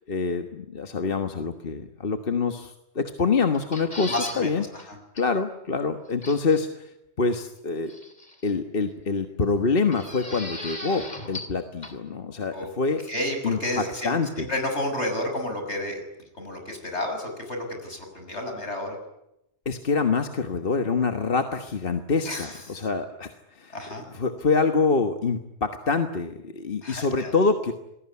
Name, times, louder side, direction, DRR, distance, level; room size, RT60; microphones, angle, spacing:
voice 1, 0.1-4.9 5.1-6.9 7.2-8.0 8.4-13.0 13.4-14.5 19.6-27.7, left 4 dB, 55° left, 7 dB, 1.6 m, -26 dB
sound 1, 3.5-4.4 4.8-4.9 5.2-5.3 6.2-6.6 7.9-8.5 9.9-11.6 11.8-11.9, left 2 dB, 40° left, 3.7 m, -37 dB
voice 2, 4.1-5.0 12.5-12.7 13.1-16.0 16.4-19.0 22.3-22.8 23.7-24.0 26.8-27.3, left 1 dB, 80° left, 4 dB, 7.0 m, -31 dB
28.0 x 20.5 x 9.7 m, 0.85 s
omnidirectional pair, 1.1 m